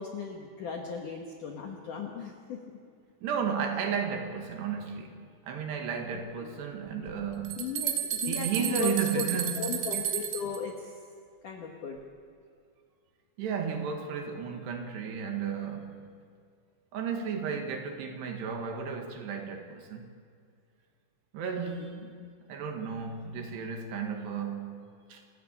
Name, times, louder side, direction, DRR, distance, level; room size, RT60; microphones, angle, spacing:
voice 1, 0.0-2.6 6.4-6.5 7.6-9.3 9.6-11.0 11.4-12.0 21.6-22.3, left 6 dB, 70° left, 2.0 m, -37 dB
voice 2, 3.2-7.7 8.3-9.7 13.4-16.1 16.9-20.1 21.3-22.0 22.5-25.2, right 6 dB, 65° right, 3.3 m, -33 dB
sound 1, 7.1-10.6, right 10 dB, 90° right, 4.7 m, -32 dB
28.5 x 13.5 x 8.8 m
omnidirectional pair, 5.8 m